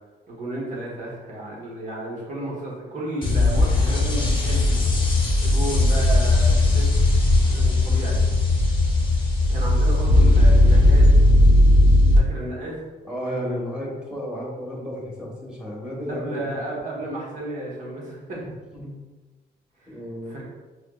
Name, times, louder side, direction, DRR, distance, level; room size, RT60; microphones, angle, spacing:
voice 1, 0.3-4.8 5.4-6.9 7.4-8.2 9.5-11.2 12.1-12.9 16.1-18.4 19.8-20.0 20.2-20.4, right 1 dB, 45° right, -4 dB, 1.2 m, -33 dB
sound 1, 3.2-12.2, left 1 dB, 25° left, 0.8 m, -17 dB
voice 2, 13.0-17.0 18.7-18.9 19.9-20.3, equal, 5° right, -4 dB, 1.1 m, -33 dB
6.1 x 2.4 x 2.3 m, 1.2 s
cardioid pair, 130°, 18 cm